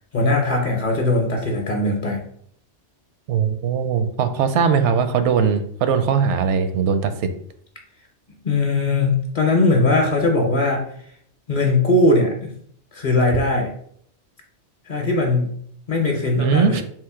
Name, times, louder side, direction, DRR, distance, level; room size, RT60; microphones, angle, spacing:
voice 1, 0.1-2.3 8.4-10.9 11.5-12.5 12.9-13.7 14.9-15.6 15.9-16.8, left 2 dB, 50° left, 1 dB, 0.7 m, -20 dB
voice 2, 3.3-7.3 16.4-16.8, right 6 dB, 80° right, 9 dB, 0.9 m, -20 dB
3.7 x 2.6 x 4.7 m, 0.64 s
omnidirectional pair, 1.2 m